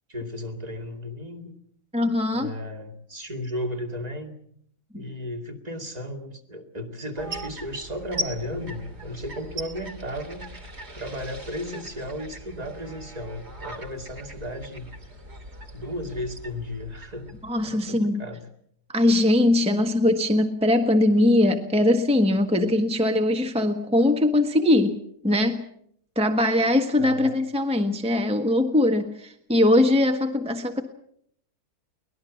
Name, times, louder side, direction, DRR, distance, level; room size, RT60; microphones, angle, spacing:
voice 1, 0.1-1.5 2.3-4.3 4.9-10.5 10.9-14.9 15.7-18.5 27.0-27.3, left 1 dB, 25° right, 4 dB, 2.5 m, -34 dB
voice 2, 1.9-2.5 4.9-5.0 17.4-18.2 18.9-25.0 25.2-25.6 26.1-30.8, left 1 dB, 5° right, 5 dB, 1.3 m, -21 dB
sound 1, 7.2-18.0, right 1 dB, 45° right, 2.9 m, -39 dB
23.5 x 19.0 x 7.2 m, 0.68 s
omnidirectional pair, 1.6 m